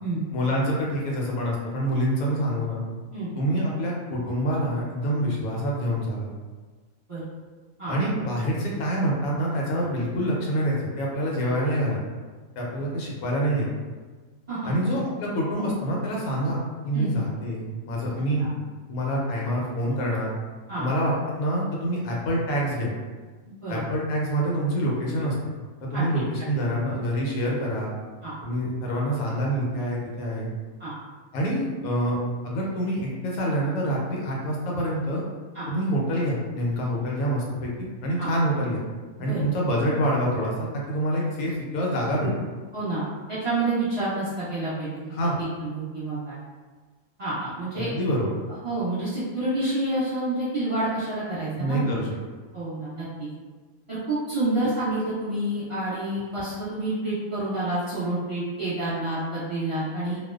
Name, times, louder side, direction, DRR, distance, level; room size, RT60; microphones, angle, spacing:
voice 1, 0.3-2.8 3.4-6.3 7.9-12.0 12.6-13.7 14.6-18.4 18.9-20.3 20.8-22.9 23.7-25.5 25.8-27.9 28.4-30.5 31.3-32.2 32.4-35.2 35.7-38.8 39.2-42.3 45.1-45.4 47.7-48.3 51.6-52.1, equal, 85° left, -3 dB, 1.1 m, -26 dB
voice 2, 23.5-23.8 25.9-26.0 28.2-28.3 30.8-30.9 35.5-35.6 38.2-38.3 39.2-39.4 42.2-42.3 42.7-44.9 45.6-46.4 47.2-47.9 48.6-51.9 52.5-53.3 53.9-60.2, right 2 dB, 25° right, -13 dB, 0.9 m, -28 dB
2.5 x 2.2 x 2.3 m, 1.4 s
omnidirectional pair, 1.5 m